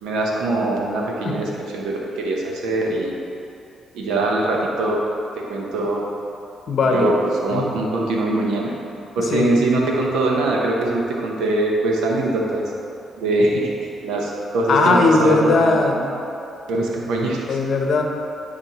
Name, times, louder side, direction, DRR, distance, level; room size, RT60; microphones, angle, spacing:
voice 1, 0.0-3.2 3.9-5.0 5.3-6.0 6.9-8.7 9.1-12.6 13.2-15.7 16.7-17.4, right 2 dB, 90° right, -1 dB, 0.9 m, -22 dB
voice 2, 6.7-7.1 7.5-7.7 9.2-9.6 14.7-16.1 17.5-18.0, left 3 dB, 60° left, 2 dB, 0.8 m, -18 dB
10.0 x 4.3 x 3.0 m, 2.7 s
cardioid pair, 80°, 0 cm